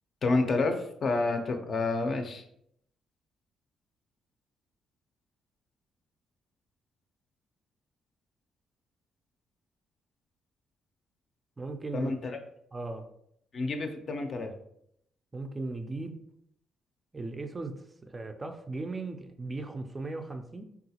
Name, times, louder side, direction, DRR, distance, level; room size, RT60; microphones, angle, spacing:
voice 1, 0.2-2.4 11.9-12.4 13.5-14.5, left 3 dB, 50° left, 5 dB, 0.5 m, -29 dB
voice 2, 11.6-12.1 12.7-13.1 15.3-16.2 17.1-17.7 18.0-20.6, right 3 dB, 25° right, 6 dB, 0.3 m, -37 dB
3.7 x 2.3 x 2.8 m, 0.71 s
cardioid pair, 90°, 0 cm